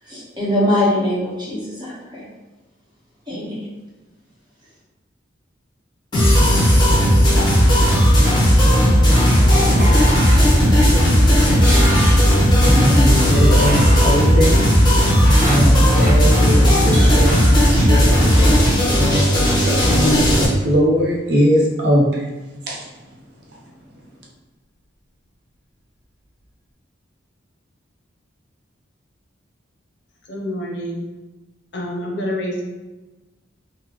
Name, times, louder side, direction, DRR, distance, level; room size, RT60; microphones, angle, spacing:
voice 1, 0.1-2.2 3.3-3.6, left 1 dB, 25° right, -8 dB, 1.0 m, -22 dB
sound 1, 6.1-20.4, equal, 20° left, 0.8 m, -14 dB
sound 2, 7.4-8.7 9.0-18.4, equal, 5° left, 1.4 m, -29 dB
voice 2, 12.6-17.4 17.7-22.3 22.7-22.8, equal, 60° right, -3 dB, 0.7 m, -21 dB
voice 3, 30.3-31.0 31.7-32.6, equal, 65° left, -1 dB, 0.6 m, -27 dB
3.5 x 2.1 x 3.0 m, 1.1 s
head